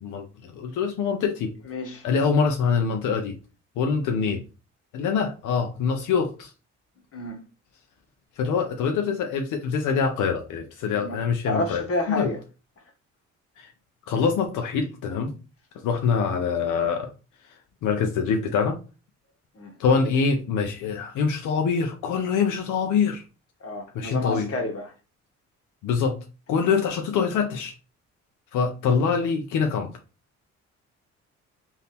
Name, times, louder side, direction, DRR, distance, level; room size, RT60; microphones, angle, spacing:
voice 1, 0.0-1.5 2.0-3.3 3.8-4.4 4.9-6.5 8.4-12.3 13.6-13.7 14.1-15.3 15.8-17.1 17.8-18.8 19.8-23.2 23.9-24.5 25.8-26.2 26.5-27.7 28.5-29.9, left 5 dB, 85° left, 0.7 m, -24 dB
voice 2, 1.7-2.0 7.1-7.5 10.9-11.2 11.5-12.4 19.5-19.7 23.6-24.9, left 2 dB, 50° left, 1.3 m, -30 dB
3.4 x 2.8 x 4.1 m
cardioid pair, 90°, 30 cm